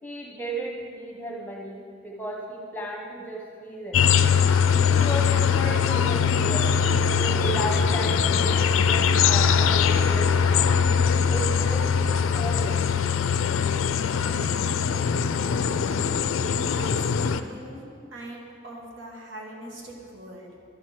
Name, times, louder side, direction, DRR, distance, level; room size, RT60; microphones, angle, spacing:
voice 1, 0.0-4.0 4.9-6.7 7.1-10.3 11.0-12.8, right 1 dB, 10° left, -3 dB, 1.2 m, -34 dB
sound 1, 3.9-17.4, left 6 dB, 80° left, 0.4 m, -22 dB
voice 2, 16.6-17.8 18.1-20.5, right 1 dB, 70° right, -1 dB, 1.4 m, -41 dB
12.5 x 4.5 x 6.5 m, 2.3 s
head